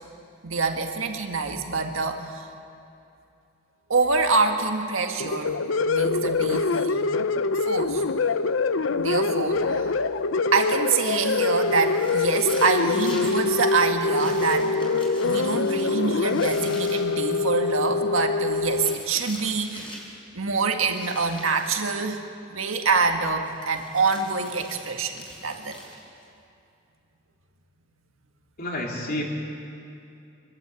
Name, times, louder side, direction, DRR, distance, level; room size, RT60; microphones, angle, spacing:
voice 1, 0.4-2.5 3.9-5.6 5.9-7.1 7.7-8.0 9.0-9.9 10.5-14.8 15.2-19.9 20.3-22.2 22.5-25.8, right 4 dB, 80° right, 4 dB, 1.7 m, -25 dB
sound 1, 5.2-18.9, left 4 dB, 70° left, 0.6 m, -24 dB
sound 2, 11.5-13.5 14.1-17.1 18.4-20.2 20.8-21.9 23.4-26.2, left 1 dB, 25° left, 4.5 m, -44 dB
voice 2, 28.6-29.2, left 1 dB, 45° left, -1 dB, 3.1 m, -29 dB
25.0 x 12.5 x 8.3 m, 2.6 s
head